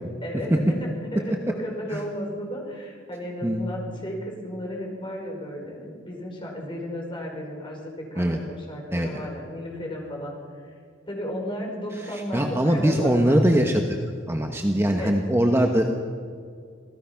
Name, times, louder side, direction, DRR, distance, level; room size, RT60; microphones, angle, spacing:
voice 1, 0.2-10.6 11.1-13.4 15.0-15.1, equal, 25° left, -1 dB, 5.4 m, -34 dB
voice 2, 8.9-9.3 12.1-14.0 14.3-15.9, equal, 15° right, 3 dB, 1.2 m, -22 dB
27.0 x 17.5 x 5.9 m, 2.1 s
head